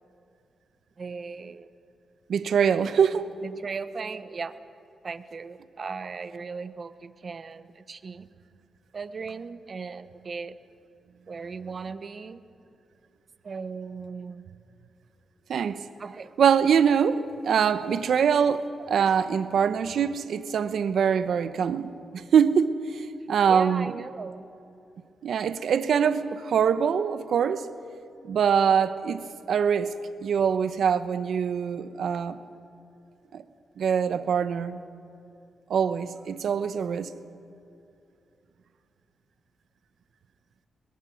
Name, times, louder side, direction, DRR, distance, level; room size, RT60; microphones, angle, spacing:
voice 1, 1.0-1.7 3.4-4.5 5.0-8.3 8.9-10.6 11.3-12.4 13.4-14.4 16.0-16.3 23.5-24.5, right 5 dB, 45° right, 0.9 m, -37 dB
voice 2, 2.3-3.3 15.5-15.8 16.4-23.9 25.2-27.7 28.2-29.9 30.2-32.4 33.3-33.4 33.8-34.8 35.7-37.1, right 7 dB, 70° right, 0.9 m, -24 dB
22.0 x 22.0 x 6.4 m
cardioid pair, 100°, 0 cm